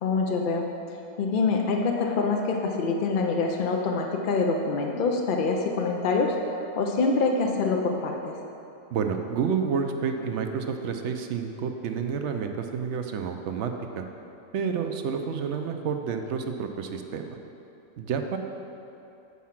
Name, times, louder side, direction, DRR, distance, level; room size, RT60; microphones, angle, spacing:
voice 1, 0.0-0.7 1.2-6.4 6.8-8.4, left 4 dB, 60° left, 1 dB, 0.5 m, -25 dB
voice 2, 8.9-14.0 14.5-17.4 18.0-18.4, right 6 dB, 65° right, 5 dB, 0.8 m, -29 dB
8.3 x 4.7 x 5.8 m, 2.8 s
omnidirectional pair, 1.5 m